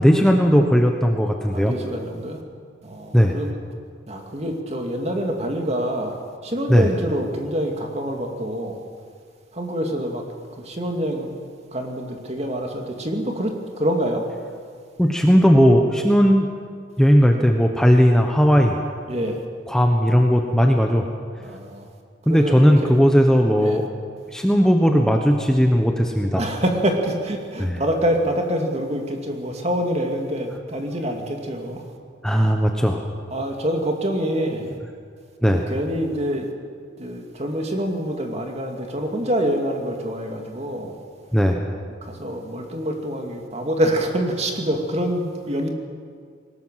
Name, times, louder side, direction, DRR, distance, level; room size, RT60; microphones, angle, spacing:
voice 1, 0.0-1.7 3.1-3.4 5.1-5.2 6.7-6.9 15.0-16.5 17.0-18.8 19.7-21.1 22.3-23.9 24.3-26.4 27.6-27.8 32.2-33.1 35.4-35.6 41.3-41.7, equal, 5° left, 2 dB, 1.1 m, -17 dB
voice 2, 1.5-2.4 2.8-3.6 4.1-8.8 9.5-10.2 10.6-11.3 11.7-14.2 19.1-19.4 21.4-21.9 22.3-22.9 23.6-23.8 26.4-31.8 33.3-34.7 35.4-36.5 37.0-41.0 42.0-45.7, equal, 35° right, 3 dB, 2.6 m, -26 dB
21.0 x 19.0 x 7.6 m, 2.1 s
head